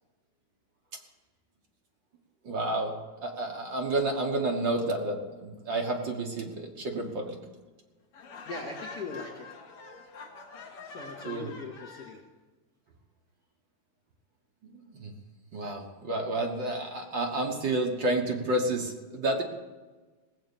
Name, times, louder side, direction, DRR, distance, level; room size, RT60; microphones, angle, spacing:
voice 1, 2.4-2.9 3.2-7.4 11.2-11.5 14.6-15.1 15.5-19.4, right 2 dB, 50° right, 1 dB, 1.6 m, -30 dB
Laughter, 8.1-12.2, left 4 dB, 55° left, 2.0 m, -45 dB
voice 2, 8.4-9.5 10.8-12.2, left 3 dB, 40° left, -1 dB, 1.8 m, -40 dB
19.0 x 7.6 x 7.1 m, 1.3 s
omnidirectional pair, 3.5 m